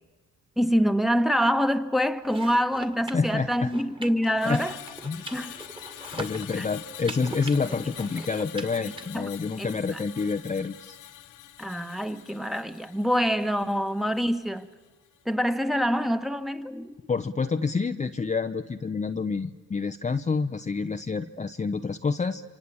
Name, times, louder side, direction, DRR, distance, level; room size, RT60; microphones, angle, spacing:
voice 1, 0.6-4.8 5.3-5.6 6.6-6.7 8.8-9.3 9.6-10.0 11.6-14.7 15.2-17.0, equal, ahead, 9 dB, 1.5 m, -26 dB
sound 1, 2.2-9.1, right 2 dB, 15° right, 2.3 m, -42 dB
voice 2, 3.1-3.7 4.4-4.6 5.0-5.4 6.1-11.0 17.1-22.4, left 4 dB, 25° left, 7 dB, 0.9 m, -28 dB
Screech, 4.4-14.7 15.0-15.3, left 12 dB, 85° left, 1.3 m, -45 dB
27.5 x 25.0 x 8.6 m, 1.4 s
cardioid pair, 90°, 30 cm